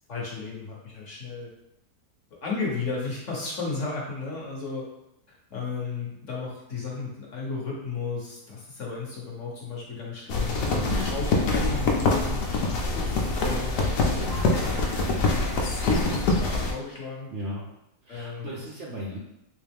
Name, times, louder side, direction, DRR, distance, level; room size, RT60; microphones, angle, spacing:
voice 1, 0.1-1.5 2.4-4.9 5.5-12.4 12.7-14.8 15.6-17.3 18.1-18.7, left 4 dB, 55° left, -3 dB, 1.1 m, -34 dB
sound 1, 10.3-16.7, left 2 dB, 80° left, 1.2 m, -25 dB
voice 2, 10.7-11.1 17.3-17.7 18.0-19.2, equal, 65° right, -4 dB, 0.7 m, -34 dB
3.2 x 3.1 x 3.4 m, 0.85 s
omnidirectional pair, 1.8 m